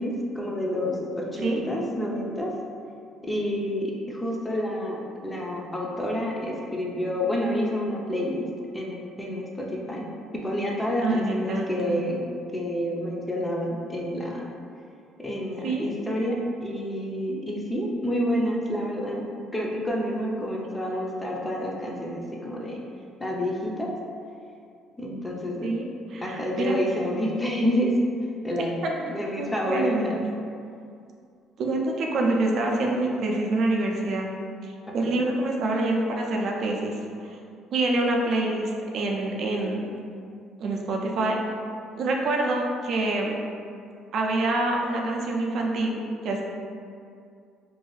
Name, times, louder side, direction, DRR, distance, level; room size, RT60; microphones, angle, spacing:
voice 1, 0.0-2.5 3.2-8.5 8.7-10.1 10.4-12.2 12.5-14.5 15.2-19.3 19.5-22.8 23.2-23.9 25.0-25.7 26.2-27.9 28.4-28.7 29.1-30.2 35.0-35.3, equal, 15° left, -2 dB, 0.5 m, -29 dB
voice 2, 11.0-12.0 15.6-15.9 25.6-26.7 28.6-28.9 29.4-30.1 31.6-34.3 34.9-36.9 37.2-37.4 37.7-40.0 40.6-41.4 42.0-43.3 44.1-46.4, right 2 dB, 60° right, 0 dB, 0.4 m, -26 dB
2.6 x 2.3 x 3.1 m, 2.4 s
cardioid pair, 90°, 0 cm